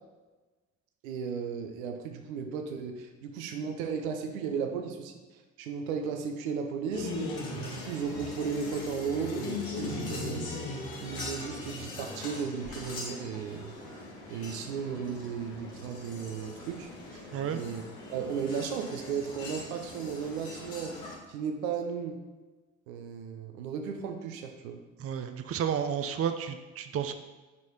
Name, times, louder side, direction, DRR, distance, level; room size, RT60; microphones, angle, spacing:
voice 1, 1.0-5.2 5.6-7.1 7.6-10.5 11.0-13.7 14.3-17.3 17.5-17.8 18.1-20.9 21.3-22.2 22.9-24.8, right 6 dB, 75° right, 4 dB, 0.8 m, -35 dB
sound 1, 6.9-21.2, left 2 dB, 60° left, 1.9 m, -40 dB
voice 2, 17.3-17.6 25.0-27.1, right 8 dB, 35° right, 8 dB, 0.6 m, -31 dB
8.4 x 4.9 x 4.2 m, 1.3 s
figure-of-eight pair, 45°, 41 cm